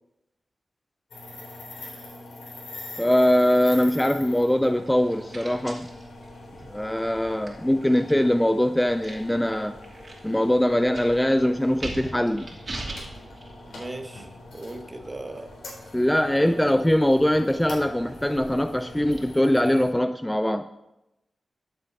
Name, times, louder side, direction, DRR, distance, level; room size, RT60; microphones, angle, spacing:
sound 1, 1.1-19.9, left 2 dB, 80° left, 3.6 m, -44 dB
voice 1, 3.0-5.9 6.7-9.8 10.2-12.5 15.9-20.7, left 1 dB, 10° left, 0.4 m, -22 dB
sound 2, 3.1-20.0, right 2 dB, 40° right, 2.7 m, -44 dB
voice 2, 13.7-15.6 16.4-16.7, right 2 dB, 25° right, 1.3 m, -37 dB
13.0 x 7.9 x 4.1 m
cardioid pair, 70°, 0 cm